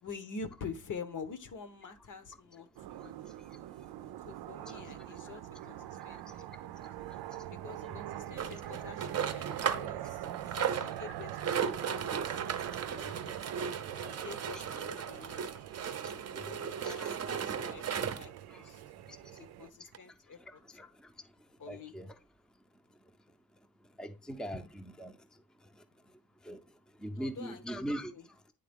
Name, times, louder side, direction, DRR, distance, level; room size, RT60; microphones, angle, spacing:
voice 1, 0.0-3.1 4.2-5.8 6.0-6.7 7.5-12.5 14.1-15.5 16.4-18.3 18.6-18.8 19.3-20.8 21.6-21.9 27.2-27.9 28.1-28.2, left 5 dB, 55° left, 1.1 m, -47 dB
sound 1, 2.8-19.7, right 13 dB, 80° right, 0.5 m, -44 dB
sound 2, 8.4-9.9 10.2-18.4 19.1-19.2 19.4-19.5 19.9-20.0, right 7 dB, 40° right, 0.7 m, -36 dB
voice 2, 13.0-13.4 13.9-14.1 14.7-14.8 16.3-16.5 16.8-17.2 18.5-18.6 20.7-20.9 21.7-22.1 24.0-25.2 26.4-26.6 27.0-28.1, equal, ahead, 0.6 m, -41 dB
10.0 x 3.5 x 3.6 m
cardioid pair, 105°, 37 cm